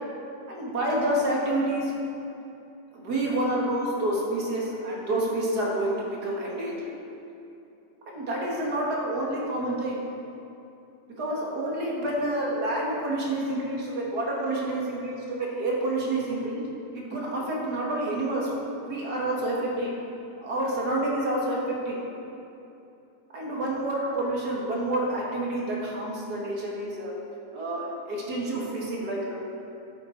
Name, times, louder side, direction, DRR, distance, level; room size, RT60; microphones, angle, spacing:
voice 1, 0.5-1.9 2.9-5.9 6.2-6.9 8.1-10.0 11.2-16.6 16.9-18.5 18.8-19.9 20.4-22.0 23.3-27.1 27.5-29.4, right 1 dB, 90° right, -3 dB, 2.5 m, -28 dB
12.0 x 7.9 x 4.6 m, 2.8 s
omnidirectional pair, 1.6 m